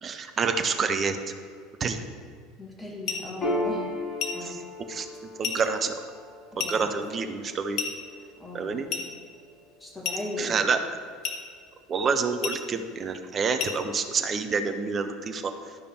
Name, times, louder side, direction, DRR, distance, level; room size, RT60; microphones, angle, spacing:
voice 1, 0.0-1.2 1.8-2.0 4.4-4.6 4.9-5.1 5.4-6.0 6.6-7.8 8.5-8.9 10.4-10.8 11.9-15.5, right 5 dB, 30° right, 7 dB, 0.8 m, -27 dB
voice 2, 2.6-3.8 4.3-4.6 6.5-6.9 8.4-9.0 9.8-10.6, left 2 dB, 10° left, -3 dB, 2.0 m, -38 dB
sound 1, 3.1-3.3 4.2-4.5 5.4-5.7 6.6-6.8 7.8-8.0 8.9-9.2 10.0-10.3 11.2-11.5 12.4-12.7 13.6-13.8, left 6 dB, 50° left, 1.1 m, -31 dB
Piano, 3.4-10.3, left 1 dB, 30° left, 1.6 m, -36 dB
11.5 x 5.1 x 4.8 m, 2.1 s
figure-of-eight pair, 70°, 0 cm